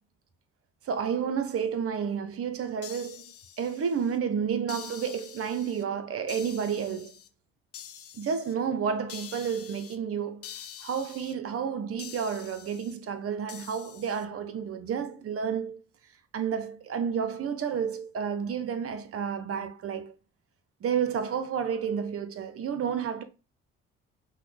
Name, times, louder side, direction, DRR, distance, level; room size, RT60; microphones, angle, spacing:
voice 1, 0.8-3.3 3.6-7.1 8.1-10.5 10.8-15.8 16.3-20.1 20.8-23.2, right 7 dB, 50° right, 0.8 m, -31 dB
sound 1, 2.8-4.2 4.7-5.8 6.3-7.3 7.7-8.5 9.1-10.0 10.4-11.3 12.0-12.9 13.5-14.3, left 9 dB, 50° left, 0.7 m, -46 dB
5.5 x 2.2 x 3.3 m
hypercardioid pair, 55°, 29 cm